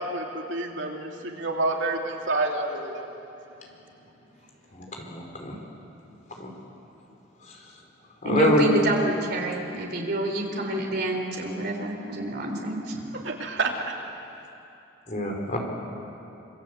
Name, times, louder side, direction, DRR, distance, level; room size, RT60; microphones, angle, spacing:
voice 1, 0.0-3.1 13.2-14.0, right 2 dB, 70° right, 1 dB, 2.9 m, -29 dB
voice 2, 4.7-5.6 6.4-6.5 7.5-7.6 8.2-8.7 15.1-15.6, left 1 dB, 40° left, 1 dB, 4.5 m, -25 dB
voice 3, 8.2-13.2, right 1 dB, 55° right, 1 dB, 4.2 m, -28 dB
27.0 x 24.5 x 8.2 m, 2.8 s
head